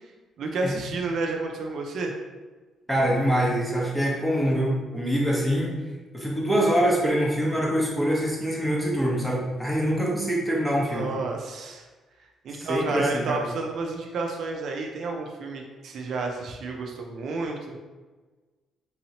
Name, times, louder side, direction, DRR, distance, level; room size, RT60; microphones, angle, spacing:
voice 1, 0.4-2.1 10.8-11.9 12.4-17.8, right 3 dB, 65° right, 1 dB, 0.4 m, -31 dB
voice 2, 2.9-5.8 6.1-11.1 12.5-13.5, equal, 5° left, -4 dB, 1.0 m, -24 dB
3.8 x 2.8 x 2.8 m, 1.3 s
cardioid pair, 90°, 0 cm